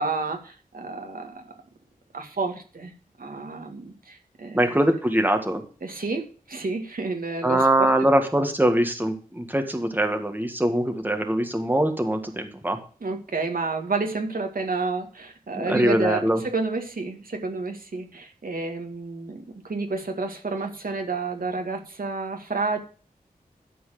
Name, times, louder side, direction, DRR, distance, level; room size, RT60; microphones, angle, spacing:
voice 1, 0.0-1.5 2.1-2.9 3.2-4.8 5.8-7.9 13.0-22.8, right 3 dB, 70° right, 3 dB, 2.1 m, -30 dB
voice 2, 4.5-5.6 7.4-12.8 15.6-16.4, right 1 dB, 10° right, 5 dB, 1.8 m, -22 dB
12.0 x 4.7 x 7.7 m, 0.39 s
wide cardioid pair, 55°, 15 cm